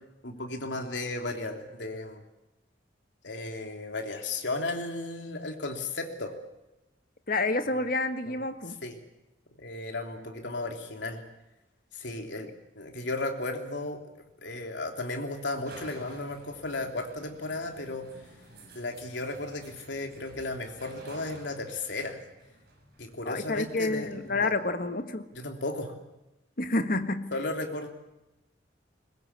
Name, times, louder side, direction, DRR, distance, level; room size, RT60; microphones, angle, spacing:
voice 1, 0.2-2.2 3.2-6.3 8.2-8.4 8.8-9.0 9.6-11.2 11.9-12.5 12.7-14.0 14.4-18.1 18.7-22.2 23.0-24.5 25.3-26.0 27.3-27.9, left 2 dB, 75° left, 3 dB, 3.2 m, -35 dB
voice 2, 7.3-8.8 23.2-25.2 26.6-27.3, left 2 dB, 50° left, 8 dB, 1.6 m, -29 dB
sound 1, 13.9-24.3, right 1 dB, 55° right, 6.7 m, -53 dB
21.5 x 21.0 x 8.3 m, 0.98 s
head